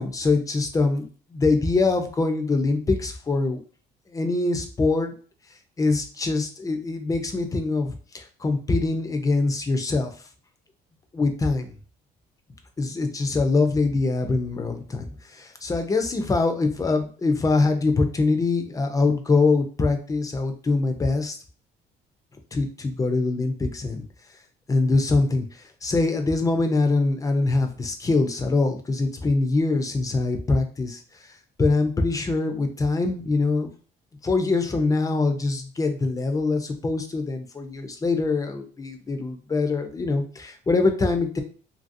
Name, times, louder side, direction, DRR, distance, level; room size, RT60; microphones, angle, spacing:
voice 1, 0.0-3.6 4.1-5.1 5.8-10.1 11.1-11.7 12.8-15.1 15.3-21.4 22.5-24.0 24.7-31.0 31.6-33.7 34.2-41.4, left 3 dB, 20° left, 6 dB, 0.5 m, -23 dB
2.8 x 2.7 x 2.6 m, 0.40 s
cardioid pair, 110°, 17 cm